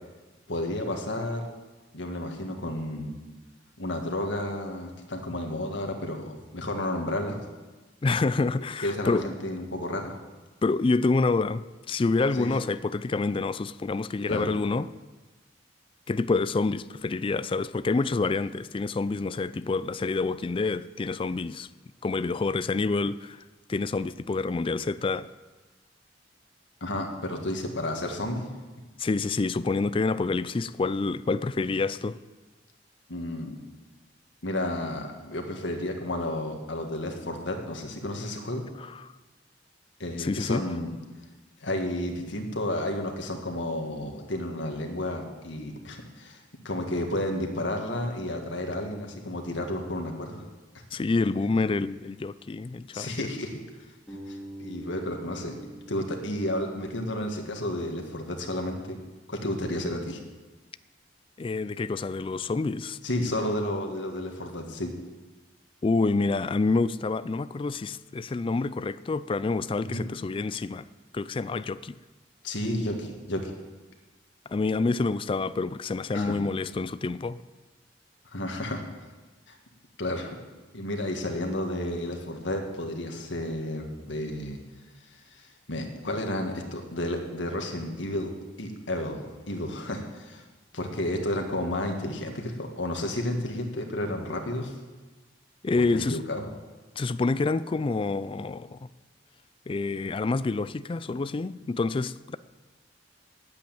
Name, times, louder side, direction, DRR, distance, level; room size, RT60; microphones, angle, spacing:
voice 1, 0.5-1.4 1.9-3.1 3.8-7.4 8.8-10.1 12.3-12.5 14.3-14.5 26.8-28.5 33.1-33.6 34.4-38.6 40.0-40.9 41.6-50.4 52.9-53.6 54.1-55.5 55.9-59.0 59.3-60.2 63.0-64.9 69.8-70.0 72.4-73.5 76.1-76.4 78.3-78.8 79.5-79.6 80.0-80.4 80.7-84.6 85.1-88.3 88.6-90.4 90.7-94.7 95.7-96.4, left 1 dB, 80° left, 1.9 m, -32 dB
voice 2, 8.0-9.2 10.6-14.9 16.1-21.7 22.0-23.4 23.7-25.3 29.0-32.2 38.8-39.1 40.2-40.6 50.9-53.3 61.4-63.0 65.8-70.9 71.1-71.9 74.5-77.4 95.6-96.2 97.0-98.8 99.7-102.4, left 3 dB, 30° left, 0.3 m, -27 dB
Bass guitar, 54.1-58.0, right 1 dB, 5° left, 3.0 m, -45 dB
10.5 x 8.5 x 8.9 m
head